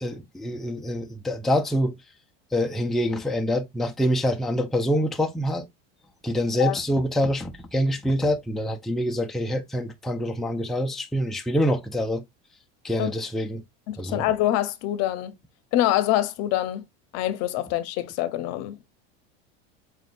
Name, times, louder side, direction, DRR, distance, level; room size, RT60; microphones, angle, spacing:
voice 1, 0.0-2.0 2.5-5.7 6.2-12.2 12.8-13.6 14.0-14.2, equal, ahead, 0.5 m, -25 dB
voice 2, 13.9-15.3 15.7-16.9 17.1-18.8, left 13 dB, 60° left, 0.8 m, -25 dB
4.5 x 3.7 x 2.5 m
supercardioid pair, 125°, 29 cm